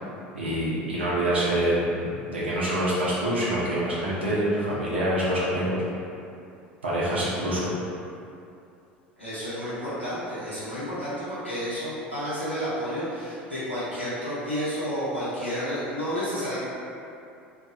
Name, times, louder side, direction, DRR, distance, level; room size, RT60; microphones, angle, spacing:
voice 1, 0.3-5.8 6.8-7.7, right 1 dB, 80° right, -8 dB, 0.6 m, -26 dB
voice 2, 9.2-16.6, equal, 90° left, -14 dB, 0.9 m, -31 dB
2.3 x 2.3 x 2.5 m, 2.6 s
figure-of-eight pair, 70°, 6 cm